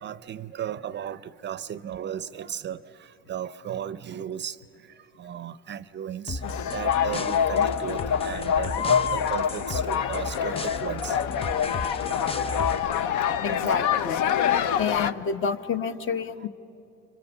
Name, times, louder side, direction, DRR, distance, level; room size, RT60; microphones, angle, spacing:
voice 1, 0.0-2.8 3.3-4.6 5.2-6.4 6.7-11.1 12.0-12.1 13.5-13.8 14.3-14.4, right 9 dB, 35° right, 0.5 m, -35 dB
sound 1, 6.3-13.0, left 3 dB, 20° left, 0.6 m, -35 dB
sound 2, 6.4-15.1, left 8 dB, 70° left, 0.8 m, -26 dB
voice 2, 13.4-14.2 14.8-16.5, left 5 dB, 40° left, 1.0 m, -29 dB
26.0 x 24.5 x 7.0 m
supercardioid pair, 100°, 31 cm